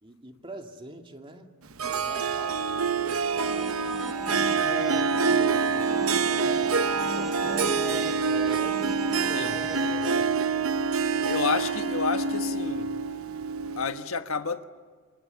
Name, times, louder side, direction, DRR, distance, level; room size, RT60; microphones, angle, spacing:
voice 1, 0.0-1.5 1.8-3.8 4.2-6.1 6.7-9.5 9.8-10.4, right 1 dB, 25° right, 2.3 m, -43 dB
Harp, 1.8-14.0, right 5 dB, 85° right, 0.9 m, -26 dB
sound 1, 3.2-10.5, right 1 dB, ahead, 1.0 m, -39 dB
voice 2, 11.2-12.9 13.8-14.6, left 5 dB, 80° left, 1.3 m, -30 dB
28.0 x 27.0 x 7.0 m
head